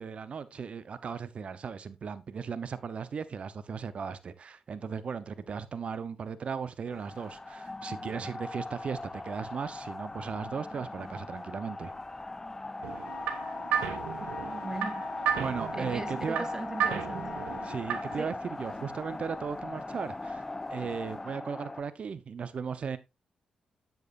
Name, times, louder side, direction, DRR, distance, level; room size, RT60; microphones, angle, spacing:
voice 1, 0.0-12.0 15.4-16.5 17.6-23.0, right 6 dB, 60° right, 0.9 m, -37 dB
sound 1, 6.9-21.8, left 2 dB, 20° left, 0.5 m, -39 dB
sound 2, 12.8-18.3, right 8 dB, 85° right, 0.9 m, -34 dB
Wind instrument woodwind instrument, 13.0-17.9, left 6 dB, 55° left, 1.3 m, -45 dB
voice 2, 14.2-15.1 15.7-17.6 18.2-18.3, right 3 dB, 25° right, 1.1 m, -39 dB
9.2 x 8.1 x 2.6 m
supercardioid pair, 50°, 2 cm